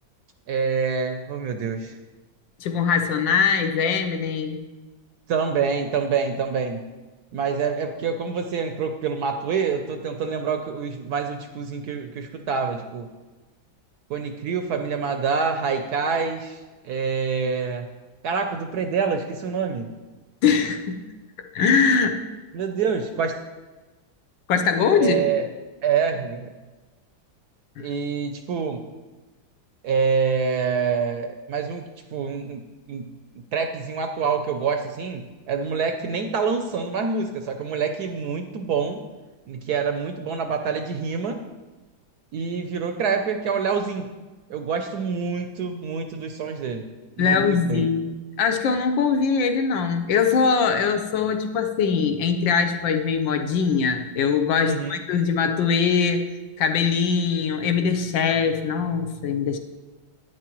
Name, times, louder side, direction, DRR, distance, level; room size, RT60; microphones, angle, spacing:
voice 1, 0.5-1.9 5.3-6.9 7.3-13.1 14.1-16.6 16.8-17.9 18.2-19.9 22.5-23.4 25.0-25.4 25.8-26.5 27.8-28.9 29.8-31.8 32.1-33.1 33.5-39.0 39.5-41.4 42.3-44.1 44.5-46.9 47.2-47.9 54.6-55.0, right 5 dB, 70° right, 6 dB, 1.0 m, -26 dB
voice 2, 2.6-4.6 20.4-21.0 21.5-22.2 24.5-25.2 27.8-27.9 47.2-56.3 56.6-59.6, left 6 dB, 75° left, 7 dB, 1.4 m, -22 dB
11.0 x 9.4 x 3.0 m, 1.2 s
omnidirectional pair, 2.1 m